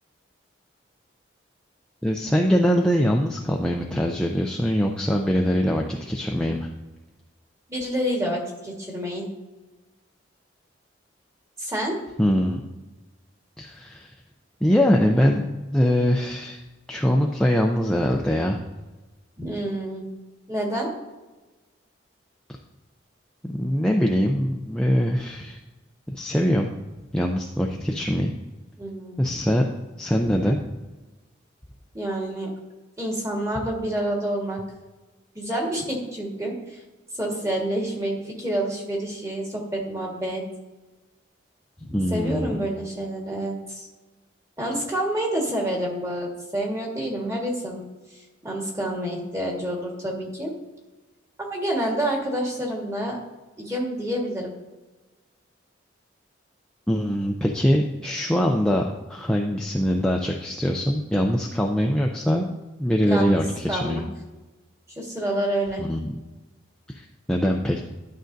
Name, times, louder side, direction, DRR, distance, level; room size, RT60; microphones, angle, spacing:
voice 1, 2.0-6.7 12.2-12.6 13.6-14.1 14.6-16.6 16.9-18.6 23.5-25.6 26.1-26.7 27.1-28.3 29.2-29.7 30.0-30.6 41.9-42.6 56.9-62.5 62.8-64.0 65.8-66.1 66.9-67.8, equal, 5° left, 0 dB, 0.4 m, -23 dB
voice 2, 7.7-9.2 11.6-12.0 19.4-20.1 20.5-20.9 28.8-29.4 30.2-30.4 31.9-32.5 33.0-34.6 35.3-36.8 37.2-40.4 41.8-43.9 44.6-47.8 48.1-50.5 51.5-53.2 53.6-54.5 63.0-63.4 63.7-64.0 65.0-65.9, right 1 dB, 15° right, -1 dB, 1.5 m, -28 dB
11.5 x 6.2 x 2.6 m, 1.2 s
head